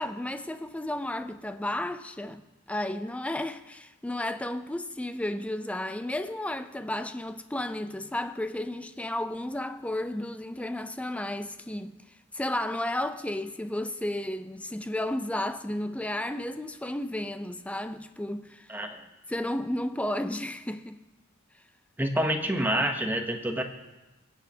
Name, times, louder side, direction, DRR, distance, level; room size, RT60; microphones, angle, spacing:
voice 1, 0.0-2.4 2.7-12.0 12.3-18.7 19.3-21.0, left 1 dB, 5° left, 0.4 m, -33 dB
voice 2, 18.7-19.0 22.0-23.6, right 1 dB, 10° right, 0.8 m, -27 dB
22.0 x 8.1 x 2.8 m
head